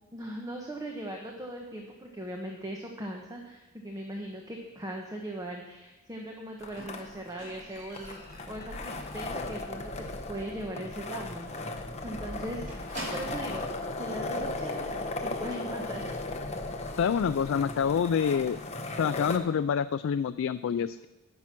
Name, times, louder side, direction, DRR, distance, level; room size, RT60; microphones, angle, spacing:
voice 1, 0.0-11.5 12.0-13.7 14.0-16.2, right 1 dB, 15° right, 1 dB, 1.1 m, -39 dB
sound 1, 6.6-19.4, left 2 dB, 30° left, 1.0 m, -37 dB
Squeak, 6.8-9.5 9.9-10.3 10.5-10.6 11.0-11.1 11.4-11.5 11.8-13.6 14.4-14.5, right 1 dB, 35° right, 3.9 m, -45 dB
voice 2, 17.0-18.6 19.0-21.1, left 7 dB, 60° left, 12 dB, 0.3 m, -27 dB
11.0 x 10.5 x 6.0 m, 1.0 s
head